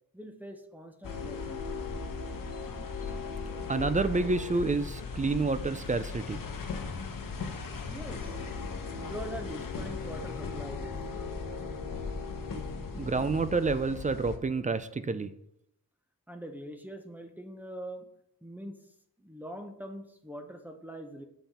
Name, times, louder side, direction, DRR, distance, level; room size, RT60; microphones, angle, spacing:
voice 1, 0.1-1.6 7.9-8.4 9.0-10.9 16.3-18.1 18.4-18.8 19.2-21.2, equal, 5° right, 5 dB, 0.8 m, -43 dB
sound 1, 1.0-14.4, left 4 dB, 65° left, 1.0 m, -37 dB
voice 2, 3.7-6.4 12.9-15.3, right 3 dB, 20° right, 12 dB, 0.3 m, -29 dB
7.1 x 5.8 x 4.2 m, 0.75 s
wide cardioid pair, 135°, 36 cm